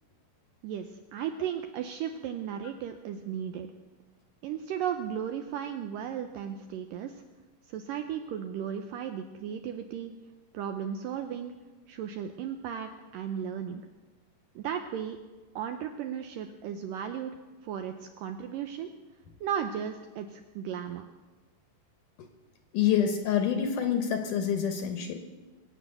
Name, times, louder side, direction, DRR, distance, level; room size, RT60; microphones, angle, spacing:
voice 1, 0.6-3.7 4.4-7.2 7.7-10.1 10.5-11.5 11.9-13.8 14.6-15.2 15.6-17.3 17.6-18.9 19.4-21.1, right 8 dB, 80° right, 7 dB, 2.0 m, -35 dB
voice 2, 22.7-25.2, left 8 dB, 70° left, 6 dB, 2.2 m, -27 dB
23.5 x 8.6 x 6.7 m, 1.2 s
omnidirectional pair, 4.6 m